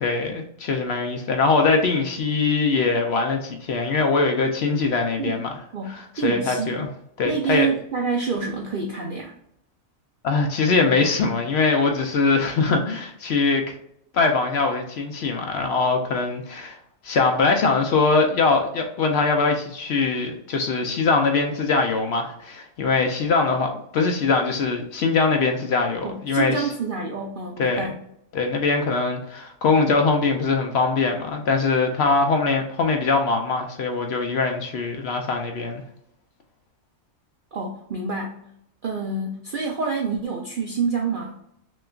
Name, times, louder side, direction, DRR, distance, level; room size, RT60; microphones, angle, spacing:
voice 1, 0.0-5.5 5.9-6.9 7.2-7.7 10.2-13.7 14.1-16.8 17.0-26.7 27.6-27.8 28.3-35.8, left 4 dB, 65° left, 3 dB, 0.7 m, -22 dB
voice 2, 5.7-6.8 7.2-9.3 26.0-28.0 37.5-38.4 38.8-41.4, right 5 dB, 70° right, 0 dB, 0.5 m, -27 dB
6.2 x 2.3 x 2.3 m, 0.75 s
omnidirectional pair, 1.4 m